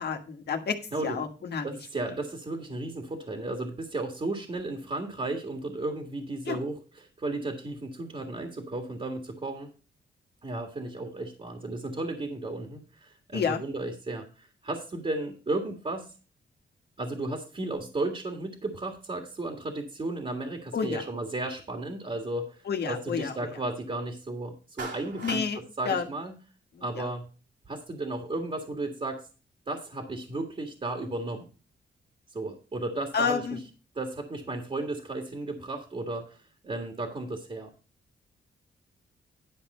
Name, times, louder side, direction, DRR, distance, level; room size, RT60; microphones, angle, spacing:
voice 1, 0.0-0.8 1.0-1.8 2.1-2.2 6.4-6.6 13.3-13.6 20.7-21.0 22.6-23.6 25.2-25.6 25.8-26.1 26.7-27.1 33.1-33.6, left 6 dB, 65° left, 5 dB, 1.5 m, -30 dB
voice 2, 1.6-6.8 7.2-9.7 10.4-16.1 17.0-25.4 25.8-26.3 26.8-27.3 27.7-29.2 29.7-31.5 32.3-33.6 34.0-36.4 36.6-37.7, right 2 dB, 35° right, 3 dB, 1.8 m, -34 dB
Clapping, 24.8-25.5, right 3 dB, 80° right, 3.3 m, -38 dB
11.0 x 5.2 x 5.4 m, 0.34 s
cardioid pair, 100°, 18 cm